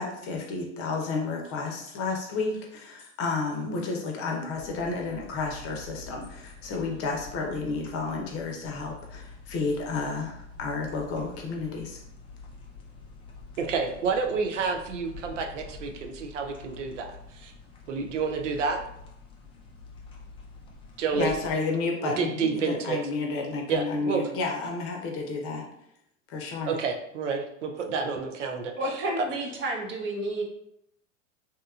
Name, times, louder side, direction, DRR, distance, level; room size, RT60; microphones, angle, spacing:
voice 1, 0.0-12.0 21.1-25.7 26.3-26.7, left 3 dB, 40° left, 1 dB, 0.7 m, -31 dB
sound 1, 4.5-21.5, left 4 dB, 15° left, 0.3 m, -47 dB
voice 2, 13.6-17.5 17.9-18.8 21.0-21.4 22.0-23.0 23.7-24.2 26.7-29.3, right 5 dB, 85° right, 4 dB, 0.5 m, -29 dB
voice 3, 28.8-30.4, right 2 dB, 35° right, 0 dB, 0.7 m, -30 dB
2.8 x 2.2 x 2.3 m, 0.77 s
hypercardioid pair, 90°, 36 cm